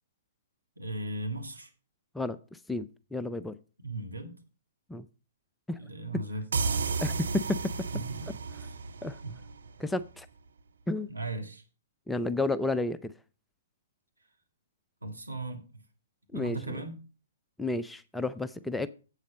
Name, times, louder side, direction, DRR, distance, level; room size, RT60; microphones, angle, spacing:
voice 1, 0.8-1.7 3.8-4.3 5.7-6.9 7.9-8.8 9.2-9.4 11.1-11.6 15.0-15.8 16.3-17.0, right 2 dB, 90° right, 3 dB, 1.8 m, -38 dB
voice 2, 2.7-3.6 4.9-5.0 5.7-5.8 7.0-7.6 9.0-9.2 9.8-10.3 10.9-11.1 12.1-13.0 16.3-16.6 17.6-18.9, left 2 dB, 5° left, 13 dB, 0.4 m, -31 dB
sound 1, 6.5-10.0, right 4 dB, 65° right, 0.7 m, -33 dB
8.3 x 7.3 x 5.2 m, 0.35 s
figure-of-eight pair, 120°, 0 cm